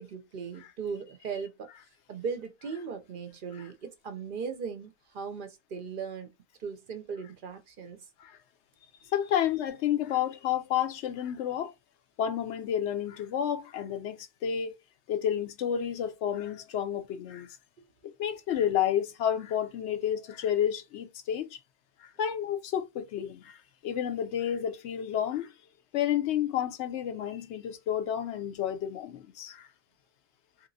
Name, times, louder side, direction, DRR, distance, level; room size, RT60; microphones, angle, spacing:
voice 1, 0.0-1.7 2.1-6.3 6.6-8.0 17.8-17.9, right 6 dB, 60° right, 0.7 m, -38 dB
voice 2, 9.1-11.7 12.2-14.8 15.1-17.5 18.0-21.6 22.0-25.5 25.9-29.7, left 9 dB, 85° left, 0.9 m, -30 dB
2.9 x 2.9 x 2.6 m
omnidirectional pair, 1.1 m